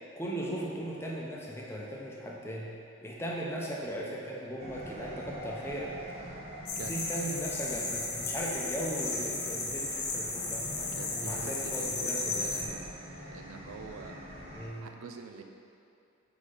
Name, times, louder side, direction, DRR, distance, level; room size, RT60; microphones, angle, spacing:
voice 1, 0.2-2.7 3.0-5.9 6.8-10.7 11.1-12.8 14.5-14.9, right 1 dB, 10° left, -3 dB, 0.6 m, -37 dB
sound 1, 4.6-14.7, right 1 dB, 30° right, 0.9 m, -44 dB
sound 2, 6.7-12.6, left 3 dB, 50° left, 0.9 m, -34 dB
voice 2, 6.8-7.4 10.9-12.9 13.3-14.2 14.8-15.4, right 4 dB, 90° right, 4 dB, 0.5 m, -45 dB
4.9 x 4.3 x 4.9 m, 2.5 s
head